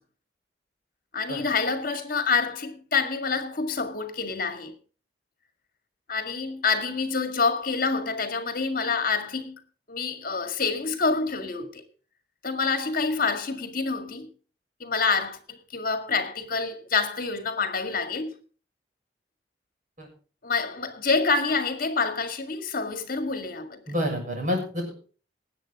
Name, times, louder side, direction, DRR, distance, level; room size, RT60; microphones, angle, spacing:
voice 1, 1.1-4.7 6.1-9.6 9.9-11.8 12.4-14.3 14.8-18.4 20.4-23.8, left 4 dB, 50° left, 2.0 m, -27 dB
voice 2, 23.9-24.9, left 1 dB, 45° right, 6.6 m, -28 dB
18.5 x 8.3 x 4.9 m
head